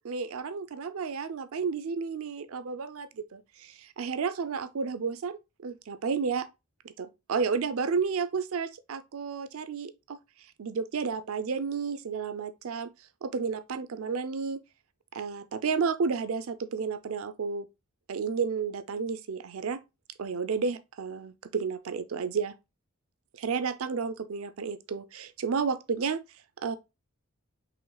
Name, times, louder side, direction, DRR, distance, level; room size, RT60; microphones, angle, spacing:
voice 1, 0.0-6.5 6.8-10.2 10.6-12.9 13.2-14.6 15.1-17.7 18.1-19.8 20.2-22.5 23.4-26.2 26.6-26.8, right 5 dB, 70° right, 0.5 m, -32 dB
5.0 x 3.2 x 2.3 m
head